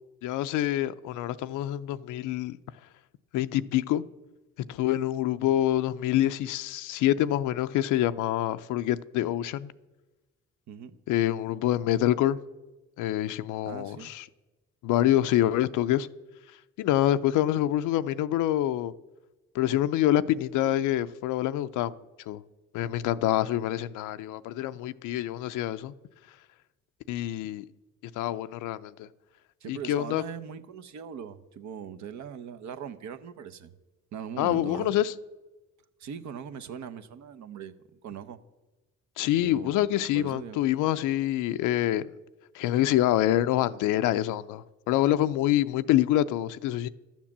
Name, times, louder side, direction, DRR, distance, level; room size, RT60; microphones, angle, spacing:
voice 1, 0.2-2.6 3.3-4.0 4.7-9.7 11.1-12.4 13.0-14.2 14.8-16.1 16.8-18.9 19.5-22.0 22.3-22.4 22.7-25.9 27.1-27.6 28.2-29.1 29.7-30.2 34.4-35.1 39.2-42.1 42.5-46.9, left 13 dB, 90° left, 0.5 m, -26 dB
voice 2, 10.7-11.0 13.6-14.1 29.6-33.7 34.1-34.9 36.0-38.4 39.4-40.6, right 8 dB, 70° right, 0.9 m, -40 dB
12.5 x 7.3 x 7.2 m
cardioid pair, 90°, 30 cm